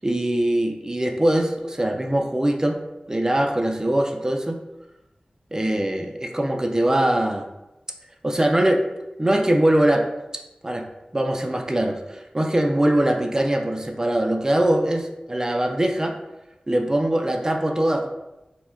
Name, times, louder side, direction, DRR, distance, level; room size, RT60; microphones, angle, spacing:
voice 1, 0.0-2.8 3.1-4.6 5.5-7.5 8.2-8.8 9.2-10.1 10.3-10.9 11.1-16.2 16.7-18.1, right 1 dB, 20° right, 3 dB, 0.4 m, -22 dB
2.2 x 2.1 x 3.4 m, 0.97 s
wide cardioid pair, 45°, 3 cm